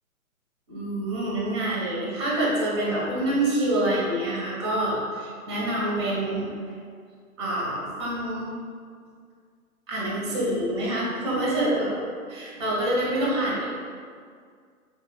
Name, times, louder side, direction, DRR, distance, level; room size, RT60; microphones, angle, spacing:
voice 1, 0.7-6.5 7.4-8.5 9.9-12.0 12.3-13.7, right 1 dB, 20° right, -5 dB, 0.5 m, -26 dB
3.0 x 2.4 x 3.7 m, 2.1 s
figure-of-eight pair, 125°, 44 cm